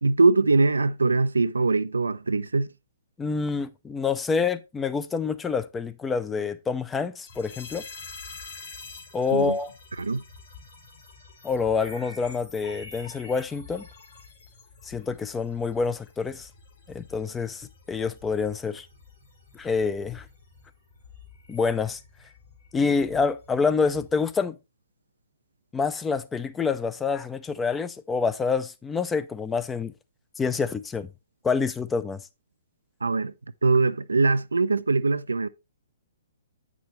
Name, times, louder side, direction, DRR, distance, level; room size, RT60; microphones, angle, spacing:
voice 1, 0.0-2.7 9.3-9.6 10.0-10.2 33.0-33.3 33.6-35.5, right 3 dB, 85° right, 0.4 m, -22 dB
voice 2, 3.2-7.8 9.1-9.7 11.4-13.9 14.8-16.5 16.9-18.9 19.5-20.3 21.5-22.0 22.7-24.6 25.7-29.9 30.4-31.1 31.4-32.2, left 5 dB, 10° left, 0.5 m, -27 dB
sound 1, 7.3-24.3, left 4 dB, 70° left, 4.1 m, -47 dB
8.5 x 6.1 x 3.1 m
figure-of-eight pair, 125°, 0 cm